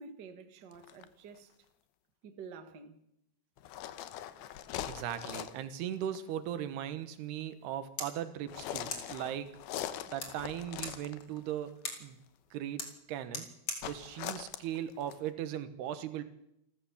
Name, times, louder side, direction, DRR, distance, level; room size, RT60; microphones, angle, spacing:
voice 1, 0.0-1.5 2.2-3.0, right 5 dB, 40° right, 1.6 m, -49 dB
sound 1, 0.7-1.0 3.6-5.7 6.0-6.3 8.5-11.5 13.8-15.3, left 12 dB, 80° left, 2.9 m, -42 dB
voice 2, 4.9-9.6 10.1-12.2 12.5-13.5 13.8-16.2, right 10 dB, 90° right, 3.4 m, -38 dB
sound 2, 7.6-15.6, left 3 dB, 30° left, 3.4 m, -46 dB
28.5 x 14.0 x 7.3 m
omnidirectional pair, 4.5 m